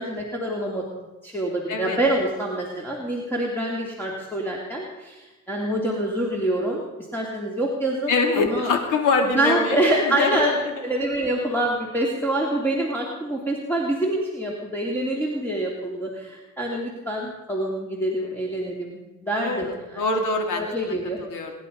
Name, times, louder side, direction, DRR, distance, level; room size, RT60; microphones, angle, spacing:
voice 1, 0.0-6.8 7.1-8.7 9.2-20.0 20.6-21.2, right 1 dB, 5° left, -3 dB, 3.1 m, -26 dB
voice 2, 8.1-10.4 19.3-20.7 21.3-21.5, left 3 dB, 85° left, 4 dB, 2.9 m, -24 dB
23.5 x 10.5 x 5.5 m, 1.1 s
cardioid pair, 90°, 30 cm